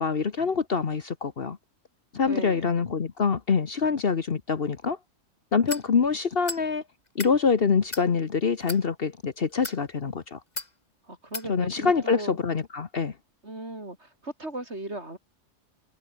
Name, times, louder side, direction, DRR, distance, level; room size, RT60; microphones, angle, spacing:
voice 1, 0.0-1.6 2.1-5.0 5.5-6.8 7.1-10.4 11.5-13.1, left 5 dB, 50° left, 1.2 m, -25 dB
voice 2, 2.2-2.7 11.1-12.4 13.4-15.2, right 1 dB, 55° right, 6.4 m, -37 dB
sound 1, 5.7-5.9 6.4-6.6 7.1-7.3 7.9-8.1 8.6-8.8 9.5-9.8 10.6-10.7 11.3-11.5, left 3 dB, 30° left, 2.2 m, -35 dB
omnidirectional pair, 1.4 m